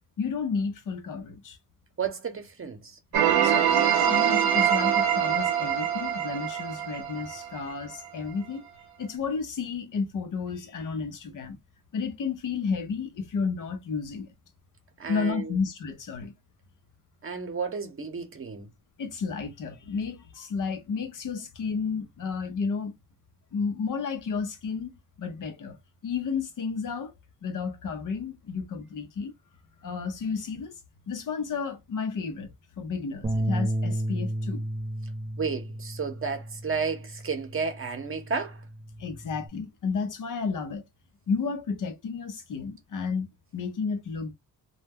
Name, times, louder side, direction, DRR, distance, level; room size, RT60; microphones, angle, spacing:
voice 1, 0.2-1.6 3.4-8.7 9.0-11.6 11.9-14.3 15.1-16.3 19.0-22.9 23.5-24.9 25.2-25.8 26.0-27.1 27.4-29.3 29.8-30.7 31.1-32.5 32.8-34.6 39.0-40.8 41.3-43.3 43.5-44.3, left 5 dB, 60° left, 0.7 m, -32 dB
voice 2, 2.0-3.0 15.0-15.6 17.2-18.7 35.4-38.6, right 5 dB, 40° right, 0.8 m, -32 dB
sound 1, 3.1-7.9, right 9 dB, 85° right, 0.6 m, -24 dB
sound 2, 33.2-39.5, right 1 dB, 15° right, 0.5 m, -33 dB
2.2 x 2.1 x 3.4 m
cardioid pair, 90°, 35 cm